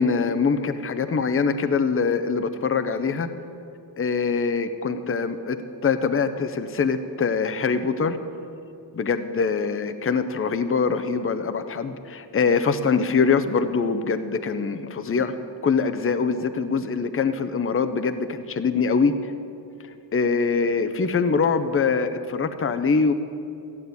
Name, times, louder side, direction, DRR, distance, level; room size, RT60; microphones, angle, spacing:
voice 1, 0.0-3.3 4.0-5.6 5.8-8.2 8.9-15.3 15.6-19.3 20.1-23.1, left 5 dB, 30° left, 10 dB, 0.6 m, -23 dB
14.5 x 8.5 x 9.4 m, 2.6 s
wide cardioid pair, 180°, 45 cm